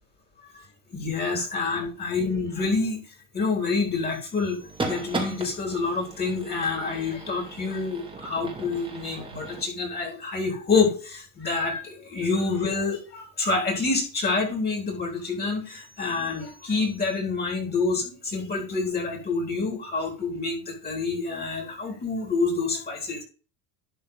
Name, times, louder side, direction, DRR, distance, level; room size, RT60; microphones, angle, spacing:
voice 1, 0.9-3.0 3.3-4.6 4.8-23.2, left 4 dB, 25° left, 1 dB, 3.9 m, -27 dB
sound 1, 4.6-9.6, right 3 dB, 10° right, 2.1 m, -36 dB
11.5 x 4.3 x 5.5 m, 0.37 s
supercardioid pair, 125°, 41 cm